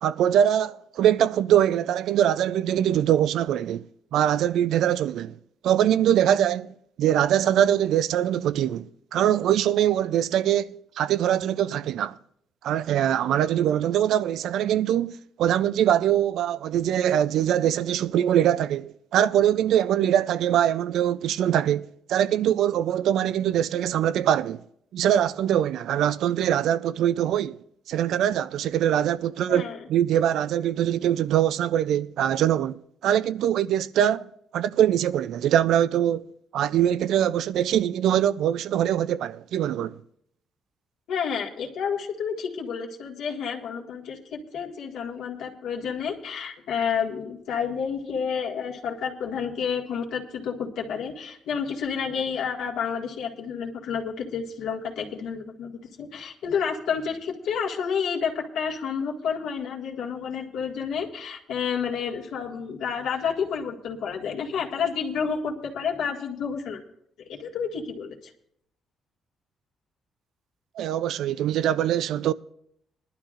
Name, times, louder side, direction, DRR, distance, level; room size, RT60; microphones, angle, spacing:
voice 1, 0.0-3.8 4.1-5.4 5.6-12.1 12.6-24.6 24.9-27.6 27.9-34.3 34.5-36.2 36.5-40.0 70.8-72.3, right 10 dB, 80° right, 0.4 m, -23 dB
voice 2, 29.5-29.8 41.1-55.7 56.0-66.8 67.2-68.3, left 6 dB, 80° left, 1.7 m, -30 dB
20.5 x 12.0 x 2.5 m
cardioid pair, 90°, 0 cm